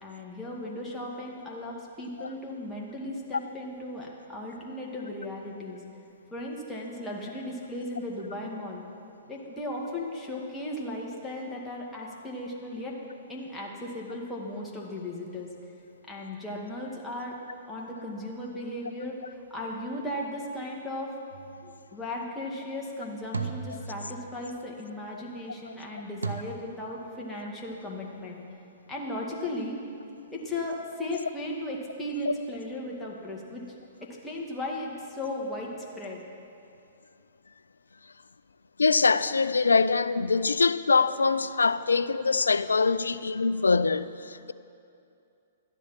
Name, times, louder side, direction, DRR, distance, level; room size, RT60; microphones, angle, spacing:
voice 1, 0.0-5.8 6.3-8.8 9.3-13.0 13.3-15.5 16.0-17.4 17.7-21.1 21.6-28.4 28.9-29.8 30.3-36.2, left 1 dB, 10° left, 2.0 m, -36 dB
sound 1, 21.3-21.7 23.3-24.6 26.2-26.3, right 4 dB, 85° right, 0.9 m, -35 dB
voice 2, 38.8-44.5, left 4 dB, 85° left, 0.4 m, -24 dB
12.5 x 10.0 x 5.9 m
figure-of-eight pair, 115°, 0 cm